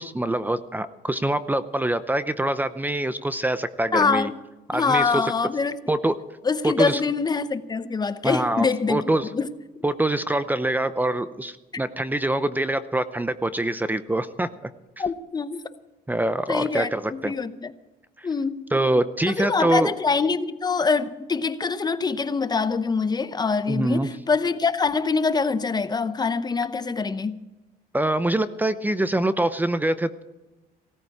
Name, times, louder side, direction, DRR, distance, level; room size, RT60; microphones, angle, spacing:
voice 1, 0.0-4.3 4.7-5.3 5.9-6.2 6.6-7.0 8.2-9.3 9.8-14.5 16.1-17.3 18.2-18.3 18.7-19.9 23.7-24.1 27.9-30.2, right 1 dB, 10° right, 0.7 m, -24 dB
voice 2, 3.9-4.3 4.7-5.8 6.4-9.0 9.3-9.5 15.0-15.6 16.5-17.7 18.2-18.6 19.3-27.4, left 4 dB, 25° left, 0.8 m, -24 dB
17.0 x 14.0 x 4.8 m
cardioid pair, 110°, 17 cm